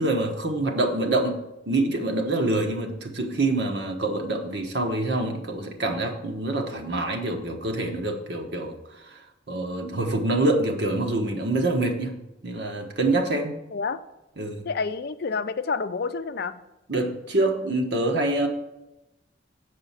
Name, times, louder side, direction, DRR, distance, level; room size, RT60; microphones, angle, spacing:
voice 1, 0.0-1.4 1.7-9.2 9.5-12.1 12.4-13.5 14.4-14.6 16.9-18.5, right 2 dB, 65° right, 3 dB, 1.3 m, -26 dB
voice 2, 13.7-14.0 14.7-16.6, left 4 dB, 55° left, 11 dB, 0.5 m, -29 dB
8.2 x 4.9 x 7.3 m, 0.94 s
head